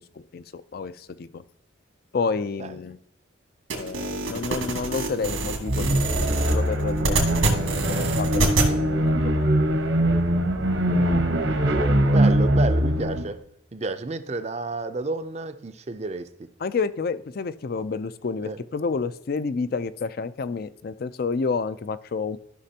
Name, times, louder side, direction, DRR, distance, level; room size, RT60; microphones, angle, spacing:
voice 1, 0.3-1.4 2.1-3.0 3.7-9.5 16.6-22.4, left 4 dB, 50° left, 0.4 m, -30 dB
sound 1, 3.7-8.7, right 2 dB, 85° right, 1.9 m, -26 dB
sound 2, 5.6-13.3, right 1 dB, 70° right, 1.1 m, -22 dB
voice 2, 11.0-13.4 13.7-16.5 18.4-18.6, right 3 dB, 35° right, 0.5 m, -31 dB
13.0 x 5.9 x 2.8 m
head